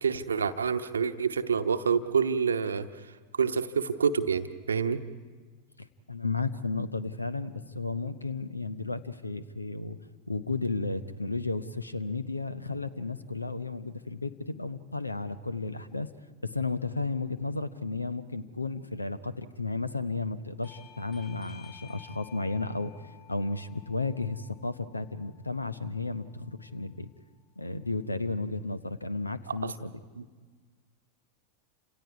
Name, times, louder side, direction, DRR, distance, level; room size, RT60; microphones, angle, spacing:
voice 1, 0.0-2.9 3.3-5.0 29.5-29.7 30.2-30.3, right 6 dB, 70° right, 10 dB, 0.9 m, -27 dB
voice 2, 5.8-10.0 10.3-16.1 16.4-22.9 23.3-27.1 27.6-29.9, left 3 dB, 80° left, 15 dB, 0.9 m, -33 dB
Bell / Doorbell, 20.6-25.8, left 9 dB, 30° left, 3.5 m, -54 dB
29.5 x 27.0 x 4.8 m, 1.5 s
figure-of-eight pair, 90°, 0 cm